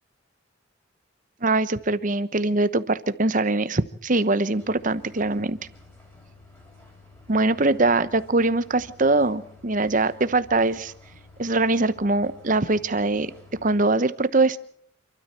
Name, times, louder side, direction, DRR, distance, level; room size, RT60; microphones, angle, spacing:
voice 1, 1.4-5.6 7.3-10.9 11.4-13.3 13.6-14.6, right 2 dB, 40° right, 13 dB, 1.0 m, -22 dB
sound 1, 4.5-13.8, left 2 dB, 10° left, 6.1 m, -51 dB
28.5 x 13.0 x 7.6 m, 0.65 s
head